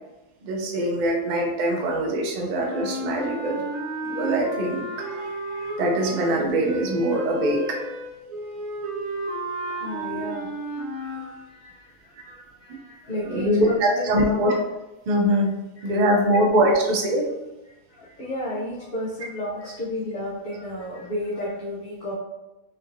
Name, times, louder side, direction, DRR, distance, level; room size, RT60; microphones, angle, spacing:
voice 1, 0.4-3.6 4.0-7.8 12.2-12.3 12.7-12.8 13.3-14.5 15.1-15.5 15.8-17.3, right 1 dB, 90° right, 0 dB, 0.4 m, -23 dB
sound 1, 2.5-11.2, right 1 dB, 15° right, 1.0 m, -32 dB
voice 2, 9.8-10.5 10.9-14.4 15.8-16.2 17.9-22.2, left 1 dB, 50° left, -6 dB, 0.7 m, -33 dB
3.2 x 3.0 x 2.5 m, 1.0 s
omnidirectional pair, 1.5 m